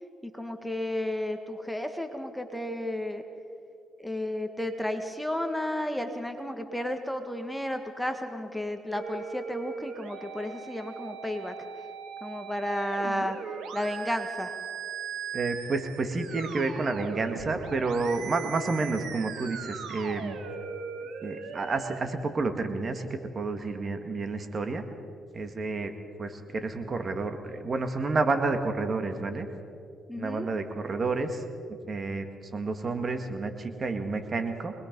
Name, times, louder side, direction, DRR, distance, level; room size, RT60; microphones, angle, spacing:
voice 1, 0.2-3.2 4.0-11.5 12.2-13.4 13.7-14.6 30.1-30.5, left 1 dB, 5° left, 6 dB, 1.6 m, -32 dB
sound 1, 8.9-22.0, right 6 dB, 80° right, 2.0 m, -39 dB
voice 2, 15.3-20.4 21.2-24.8 25.3-25.9 26.2-29.5 30.2-31.4 31.7-32.3 32.5-34.7, right 3 dB, 40° right, 6 dB, 1.9 m, -30 dB
25.0 x 21.0 x 5.4 m, 2.4 s
cardioid pair, 90°, 0 cm